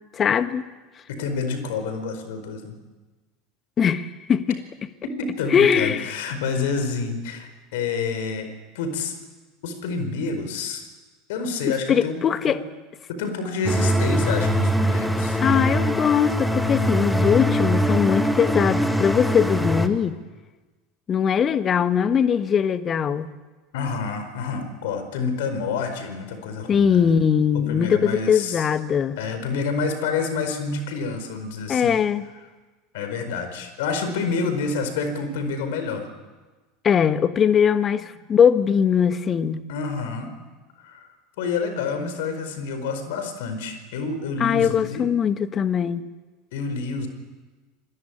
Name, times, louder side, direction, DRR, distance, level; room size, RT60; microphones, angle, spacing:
voice 1, 0.1-0.6 3.8-4.6 5.5-6.1 11.9-12.6 15.4-20.2 21.1-23.3 26.7-29.2 31.7-32.2 36.8-39.7 44.4-46.1, left 7 dB, 30° left, 1.5 m, -21 dB
voice 2, 1.1-2.8 5.0-9.1 9.6-10.8 11.3-12.6 13.1-15.4 23.7-27.1 27.5-28.7 29.2-32.0 32.9-36.1 38.0-38.1 39.7-40.3 40.8-41.1 41.4-45.1 46.5-47.1, left 4 dB, 60° left, 4.7 m, -28 dB
sound 1, 13.6-19.9, equal, ahead, 2.2 m, -22 dB
26.0 x 21.5 x 8.8 m
figure-of-eight pair, 75°, 0 cm